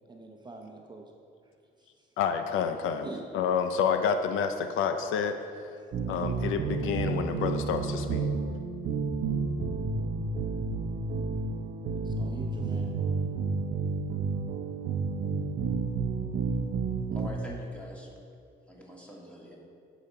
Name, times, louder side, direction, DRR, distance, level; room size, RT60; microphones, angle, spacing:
voice 1, 0.1-1.1 1.8-1.9 3.0-3.3 12.0-12.9, right 3 dB, 20° right, 1 dB, 0.9 m, -44 dB
voice 2, 2.2-3.1 3.3-5.4 6.1-8.3, left 7 dB, 90° left, 8 dB, 0.6 m, -29 dB
sound 1, 5.9-17.3, right 4 dB, 60° right, 0.8 m, -31 dB
voice 3, 17.1-18.1 18.7-19.6, equal, 5° left, -3 dB, 2.2 m, -44 dB
10.5 x 5.1 x 5.6 m, 2.4 s
cardioid pair, 90°, 20 cm